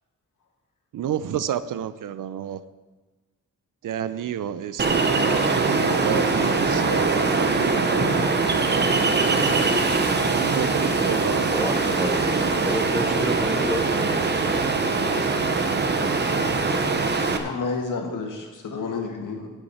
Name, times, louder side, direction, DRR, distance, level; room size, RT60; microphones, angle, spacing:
voice 1, 0.9-2.6 3.8-8.3 8.7-9.1 10.3-11.7, right 9 dB, 80° right, 0.6 m, -30 dB
Ocean, 4.8-17.4, right 3 dB, 35° right, 0.9 m, -22 dB
voice 2, 11.3-14.3, equal, ahead, 0.5 m, -31 dB
voice 3, 17.4-19.5, left 4 dB, 80° left, 2.0 m, -30 dB
17.0 x 8.0 x 4.3 m
wide cardioid pair, 165°, 31 cm